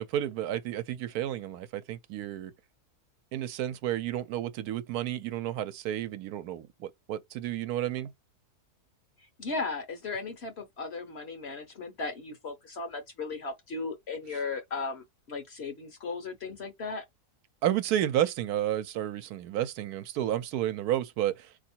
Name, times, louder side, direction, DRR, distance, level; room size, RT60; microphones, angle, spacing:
voice 1, 0.0-2.5 3.3-8.1 17.6-21.5, right 12 dB, 80° right, 1.1 m, -31 dB
voice 2, 9.4-17.0, left 4 dB, 50° left, 0.9 m, -36 dB
3.7 x 2.7 x 4.3 m
omnidirectional pair, 1.6 m